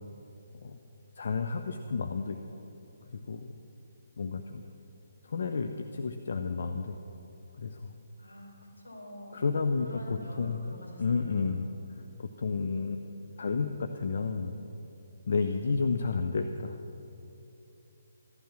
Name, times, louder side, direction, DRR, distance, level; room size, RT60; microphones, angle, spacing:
voice 1, 1.2-2.4 3.1-3.6 4.2-4.6 5.2-7.0 7.6-7.9 9.3-10.6 11.0-11.6 12.2-13.1 13.4-14.5 15.3-16.8, left 4 dB, 55° left, 7 dB, 0.7 m, -31 dB
voice 2, 8.2-11.7, equal, 75° left, -2 dB, 4.3 m, -47 dB
15.0 x 12.0 x 6.1 m, 2.9 s
figure-of-eight pair, 140°, 0 cm